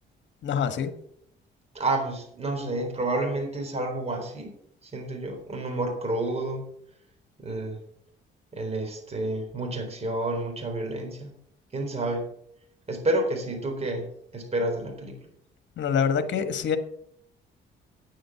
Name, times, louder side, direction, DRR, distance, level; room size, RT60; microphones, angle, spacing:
voice 1, 0.4-0.9 15.8-16.8, left 7 dB, 65° left, 1.5 m, -25 dB
voice 2, 1.7-4.5 4.8-6.6 7.4-7.8 8.5-11.3 11.7-12.3 12.9-15.2, right 2 dB, 30° right, 3.9 m, -29 dB
9.3 x 7.6 x 7.1 m
cardioid pair, 90°, 20 cm